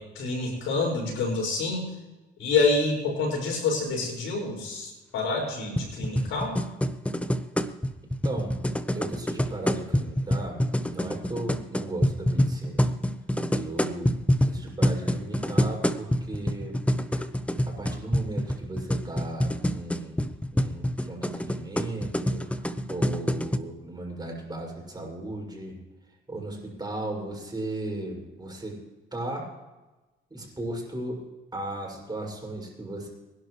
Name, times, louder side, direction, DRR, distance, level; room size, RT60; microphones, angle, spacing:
voice 1, 0.0-1.8 2.4-6.5, left 3 dB, 85° left, 0 dB, 5.8 m, -27 dB
sound 1, 5.8-23.6, equal, 5° left, 0.9 m, -27 dB
voice 2, 8.2-8.6 8.9-12.9 13.5-14.2 14.4-16.8 17.7-25.8 26.3-28.8 29.1-29.5 30.3-31.2 31.5-33.1, right 2 dB, 20° right, -1 dB, 6.2 m, -36 dB
25.0 x 11.5 x 3.2 m, 1.1 s
cardioid pair, 90°, 20 cm